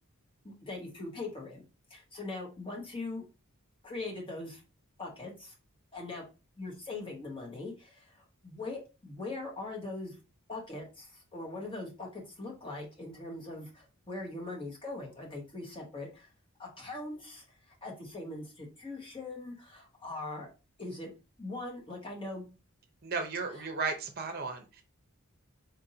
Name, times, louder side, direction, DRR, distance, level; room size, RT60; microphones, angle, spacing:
voice 1, 0.4-1.6 1.9-3.2 3.8-4.6 5.0-5.5 5.9-6.2 6.6-10.2 10.5-16.3 16.6-20.5 20.8-21.1 21.4-22.5, left 2 dB, 25° left, -1 dB, 1.0 m, -41 dB
voice 2, 23.0-24.8, right 4 dB, 45° right, 5 dB, 0.7 m, -35 dB
4.0 x 2.6 x 2.7 m, 0.30 s
head